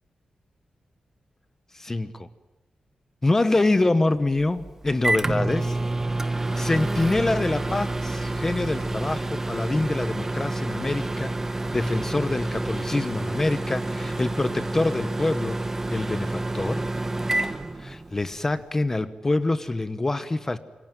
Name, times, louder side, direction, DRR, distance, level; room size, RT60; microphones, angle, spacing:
voice 1, 1.7-2.3 3.2-5.8 6.3-11.3 11.7-15.6 15.9-16.8 17.8-20.6, left 2 dB, 20° left, 13 dB, 1.0 m, -25 dB
Microwave oven, 4.4-18.4, right 2 dB, 20° right, 1.2 m, -28 dB
27.5 x 24.0 x 9.1 m, 1.0 s
wide cardioid pair, 170°, 2 cm